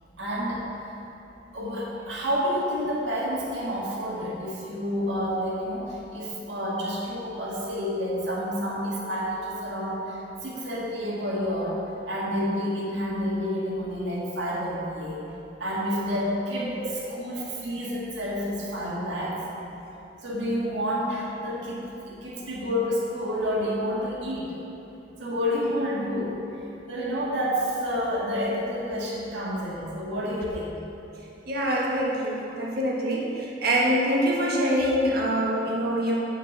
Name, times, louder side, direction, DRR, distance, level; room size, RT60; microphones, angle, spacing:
voice 1, 0.2-0.6 1.5-11.8 12.1-15.2 15.6-16.8 17.1-19.4 20.2-24.5 25.2-26.4 26.9-30.8, equal, 70° right, -5 dB, 1.8 m, -29 dB
voice 2, 31.5-36.1, equal, 55° right, -3 dB, 1.5 m, -25 dB
7.3 x 6.0 x 6.6 m, 2.9 s
head